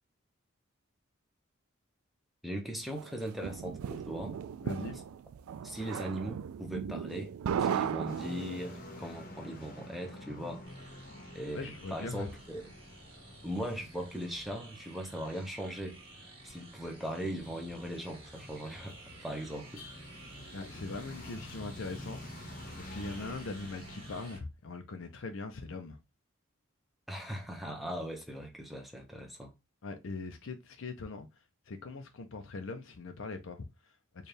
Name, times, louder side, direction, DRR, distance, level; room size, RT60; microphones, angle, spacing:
voice 1, 2.4-4.4 5.6-7.3 7.6-10.7 11.3-12.7 13.4-19.9 27.1-29.5, equal, ahead, 0.6 m, -39 dB
sound 1, 3.0-8.8, right 8 dB, 90° right, 0.3 m, -36 dB
voice 2, 4.6-5.0 11.5-12.3 20.5-22.3 22.8-26.0 29.8-31.3 31.7-34.3, left 3 dB, 65° left, 0.5 m, -41 dB
sound 2, 8.1-24.4, left 1 dB, 40° left, 0.9 m, -49 dB
sound 3, 10.6-24.4, right 2 dB, 25° right, 1.4 m, -54 dB
4.3 x 2.4 x 3.3 m
head